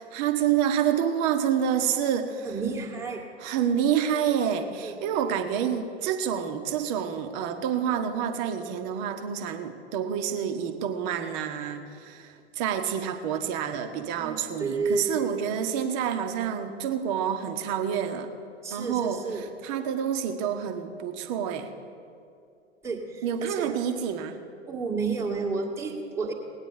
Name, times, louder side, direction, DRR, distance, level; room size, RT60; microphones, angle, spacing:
voice 1, 0.0-2.6 3.4-18.3 18.7-21.7 23.2-24.4, right 8 dB, 35° right, 7 dB, 1.2 m, -28 dB
voice 2, 2.5-3.2 4.8-4.9 14.2-15.3 18.6-19.4 22.8-23.0 23.4-23.7 24.7-26.3, right 4 dB, 10° right, -2 dB, 1.7 m, -30 dB
18.5 x 9.3 x 5.5 m, 2.4 s
figure-of-eight pair, 95°, 36 cm